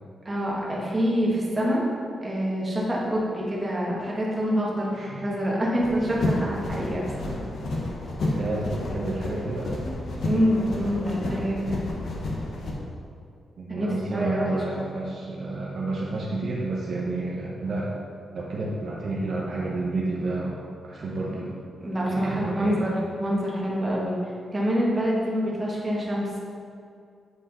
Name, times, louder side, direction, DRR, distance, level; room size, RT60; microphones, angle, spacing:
voice 1, 0.2-1.8 2.2-4.9 5.2-7.3 9.8-11.9 13.7-14.4 21.3-21.4 21.8-24.2 24.5-26.3, equal, 20° right, -5 dB, 1.6 m, -26 dB
voice 2, 4.9-5.3 8.4-9.7 13.6-18.0 18.3-21.6 22.1-22.9, right 2 dB, 55° right, -4 dB, 0.9 m, -30 dB
sound 1, 5.8-12.7, left 1 dB, 65° left, 1.2 m, -31 dB
8.2 x 4.8 x 4.2 m, 2.4 s
wide cardioid pair, 135°, 0 cm